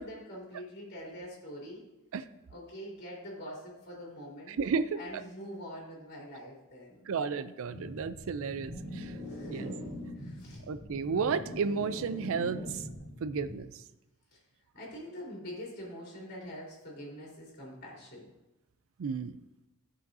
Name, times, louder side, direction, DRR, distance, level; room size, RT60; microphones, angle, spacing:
voice 1, 0.0-1.8 2.5-4.6 4.9-7.1 9.3-9.8 10.1-10.6 14.3-14.4 14.7-18.3, equal, 50° left, -5 dB, 3.2 m, -44 dB
voice 2, 4.5-5.0 7.1-9.1 9.5-9.7 10.7-12.8 13.2-13.8 19.0-19.4, right 5 dB, 65° right, 12 dB, 0.4 m, -32 dB
sound 1, 7.7-13.6, left 1 dB, 35° right, 1.6 m, -42 dB
14.5 x 5.7 x 2.7 m, 0.97 s
head